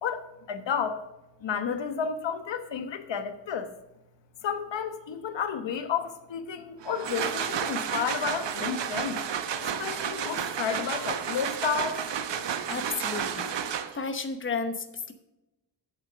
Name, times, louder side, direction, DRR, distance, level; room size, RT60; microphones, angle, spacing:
voice 1, 0.0-1.1 1.4-3.7 4.4-9.2 9.6-12.0, left 7 dB, 90° left, 8 dB, 1.2 m, -31 dB
sound 1, 6.8-14.2, right 8 dB, 80° right, 0.9 m, -31 dB
voice 2, 12.7-13.5 13.9-15.1, left 4 dB, 30° left, 8 dB, 1.0 m, -32 dB
8.6 x 7.4 x 6.1 m, 0.96 s
wide cardioid pair, 130°, 43 cm